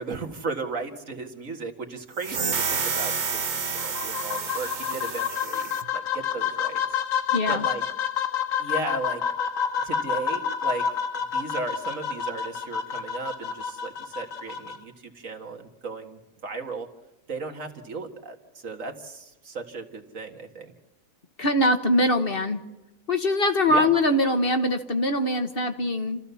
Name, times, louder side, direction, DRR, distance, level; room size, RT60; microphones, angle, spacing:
voice 1, 0.0-6.8 7.5-7.8 8.6-9.2 9.8-16.9 17.3-20.7 23.7-23.9, right 3 dB, 70° right, 4 dB, 2.3 m, -35 dB
sound 1, 2.2-5.9, right 5 dB, 40° right, 0.9 m, -29 dB
sound 2, 3.8-14.8, left 7 dB, 75° left, 1.8 m, -29 dB
voice 2, 7.3-7.6 21.4-22.6 23.1-26.2, left 1 dB, 45° left, 7 dB, 1.4 m, -23 dB
28.5 x 14.5 x 7.0 m, 1.0 s
omnidirectional pair, 1.4 m